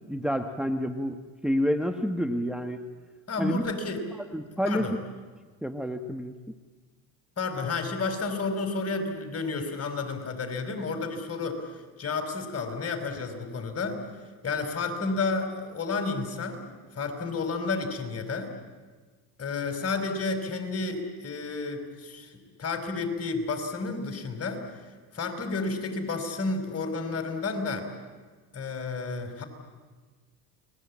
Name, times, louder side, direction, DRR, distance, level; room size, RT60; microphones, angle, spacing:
voice 1, 0.1-2.8 3.4-3.6 4.3-4.9 5.6-6.3, equal, ahead, 5 dB, 1.4 m, -29 dB
voice 2, 3.3-4.1 4.6-5.0 7.4-11.7 12.0-14.0 14.4-18.5 19.4-22.3 22.6-24.9 25.1-27.9 28.5-29.4, left 3 dB, 35° left, 7 dB, 5.3 m, -31 dB
30.0 x 21.0 x 8.7 m, 1.4 s
supercardioid pair, 90°, 43 cm